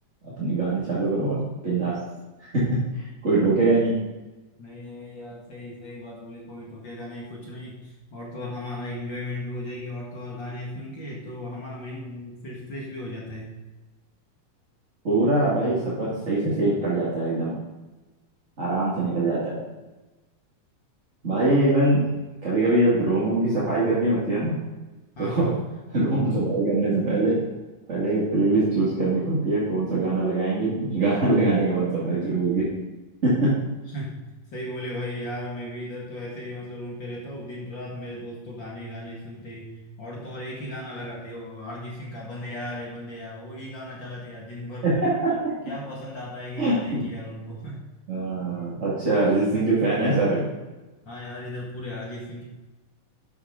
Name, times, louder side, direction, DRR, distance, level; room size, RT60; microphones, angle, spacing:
voice 1, 0.2-2.0 2.5-2.6 3.2-4.0 15.0-17.5 18.6-19.6 21.2-22.0 22.4-24.6 25.2-25.5 25.9-27.4 27.9-32.6 33.2-33.5 44.8-45.5 46.6-47.0 48.1-50.5, right 2 dB, 25° right, -8 dB, 1.7 m, -23 dB
voice 2, 4.6-13.6 25.2-25.6 33.9-34.2 34.5-44.9 45.6-47.8 51.0-52.4, left 1 dB, 40° left, -3 dB, 2.0 m, -36 dB
11.5 x 8.6 x 3.7 m, 1.1 s
omnidirectional pair, 4.1 m